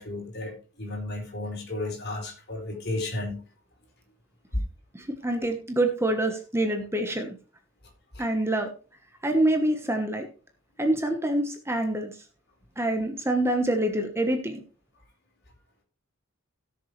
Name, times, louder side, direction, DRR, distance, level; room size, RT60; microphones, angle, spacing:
voice 1, 0.0-3.4 4.5-4.6 8.1-8.3, left 2 dB, 50° left, 1 dB, 4.5 m, -33 dB
voice 2, 4.9-7.3 8.2-8.7 9.2-10.3 10.8-12.1 12.8-14.6, right 1 dB, 10° right, 5 dB, 1.3 m, -26 dB
17.0 x 6.9 x 3.3 m, 0.37 s
head